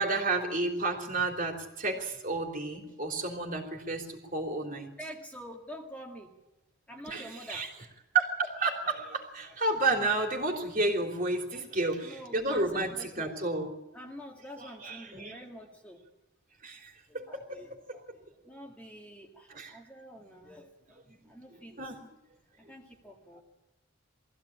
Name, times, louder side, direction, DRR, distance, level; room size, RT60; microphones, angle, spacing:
voice 1, 0.0-4.9 7.1-7.7 8.1-13.7 14.6-15.4 16.6-18.0 19.5-19.8 20.4-20.5 21.1-21.2 21.5-22.0, right 3 dB, 40° right, 3 dB, 3.4 m, -31 dB
voice 2, 5.0-6.3 6.9-7.7 11.5-13.5 13.9-16.0 17.1-18.1 18.4-21.0 21.3-21.8 22.6-23.4, equal, 5° left, 1 dB, 2.0 m, -47 dB
22.0 x 15.5 x 8.7 m, 0.98 s
head